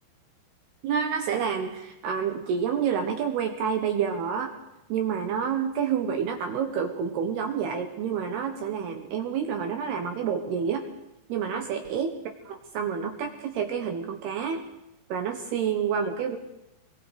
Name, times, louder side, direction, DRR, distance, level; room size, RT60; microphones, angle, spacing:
voice 1, 0.8-4.5 4.9-10.9 11.3-12.2 12.4-14.6 15.1-16.4, right 7 dB, 75° right, 5 dB, 2.5 m, -28 dB
24.5 x 22.0 x 4.9 m, 0.88 s
omnidirectional pair, 5.9 m